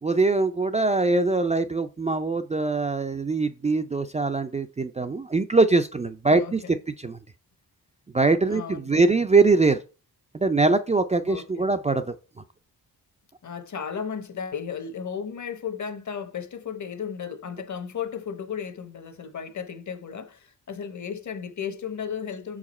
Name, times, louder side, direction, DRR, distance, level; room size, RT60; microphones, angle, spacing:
voice 1, 0.0-6.6 7.0-7.2 8.1-9.8 10.3-12.2, right 3 dB, 20° right, 0.4 m, -22 dB
voice 2, 8.5-9.1 11.2-11.7 13.4-22.6, left 7 dB, 50° left, 1.1 m, -34 dB
5.8 x 4.8 x 4.2 m
cardioid pair, 90°, 38 cm